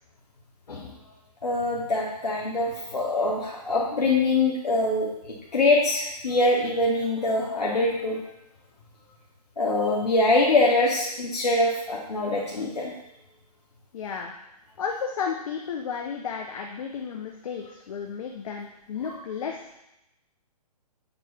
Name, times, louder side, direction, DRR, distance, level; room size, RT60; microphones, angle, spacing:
voice 1, 1.4-8.2 9.6-12.9, left 2 dB, 85° left, -4 dB, 0.8 m, -24 dB
voice 2, 13.9-14.3 14.8-19.7, left 6 dB, 60° left, 1 dB, 0.5 m, -33 dB
6.7 x 3.0 x 2.3 m, 0.88 s
hypercardioid pair, 140°, 20 cm